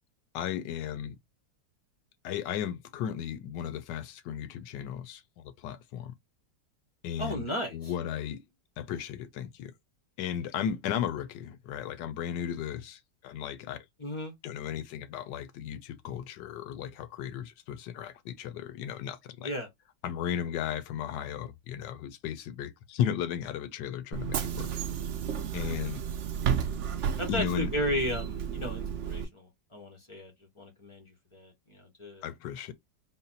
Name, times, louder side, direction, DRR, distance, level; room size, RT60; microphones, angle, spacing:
voice 1, 0.3-1.2 2.2-6.1 7.0-8.4 8.8-9.7 10.2-13.8 14.4-19.5 20.0-24.7 25.5-26.0 27.3-27.7 32.2-32.7, left 9 dB, 80° left, 1.3 m, -35 dB
voice 2, 7.2-7.8 14.0-14.3 19.4-19.7 27.2-31.1 31.3-32.2, equal, 35° left, 0.4 m, -34 dB
Bus / Engine, 24.1-29.3, right 8 dB, 70° right, 0.7 m, -32 dB
4.0 x 2.1 x 3.9 m
omnidirectional pair, 1.9 m